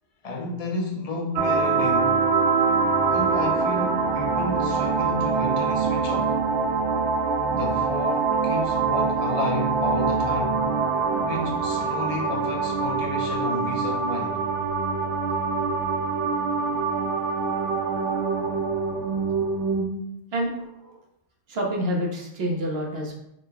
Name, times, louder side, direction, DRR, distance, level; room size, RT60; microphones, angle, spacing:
voice 1, 0.2-2.3 3.1-6.4 7.5-10.6 11.2-14.4, left 2 dB, 40° left, 0 dB, 0.7 m, -32 dB
sound 1, 1.4-19.8, right 4 dB, 90° right, 0.9 m, -24 dB
voice 2, 20.3-21.0 21.5-23.2, equal, 65° right, 0 dB, 1.1 m, -28 dB
5.1 x 3.7 x 2.2 m, 0.79 s
omnidirectional pair, 1.1 m